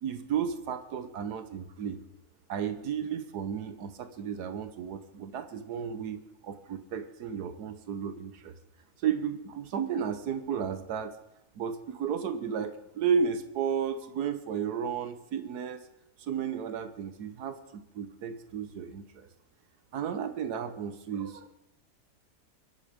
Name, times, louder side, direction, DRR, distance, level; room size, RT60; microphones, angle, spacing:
voice 1, 0.0-2.0 2.5-8.5 9.0-11.1 11.6-15.8 16.2-19.3 19.9-21.5, right 7 dB, 90° right, 10 dB, 1.5 m, -33 dB
23.5 x 8.1 x 5.1 m, 0.86 s
omnidirectional pair, 1.6 m